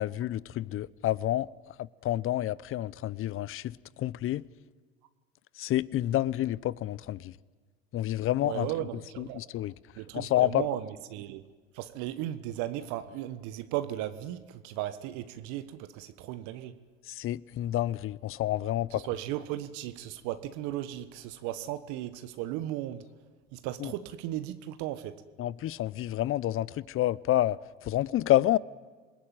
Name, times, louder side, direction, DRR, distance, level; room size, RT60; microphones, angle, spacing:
voice 1, 0.0-1.5 1.8-4.4 5.6-7.3 7.9-8.7 9.2-9.7 10.1-10.7 17.1-19.0 23.8-23.9 25.4-28.6, left 14 dB, 40° left, 0.8 m, -29 dB
voice 2, 8.4-9.4 10.0-11.5 11.7-16.8 18.9-23.0 23.5-25.2, right 13 dB, 60° right, 1.4 m, -36 dB
27.5 x 20.5 x 9.2 m
hypercardioid pair, 75°, 33 cm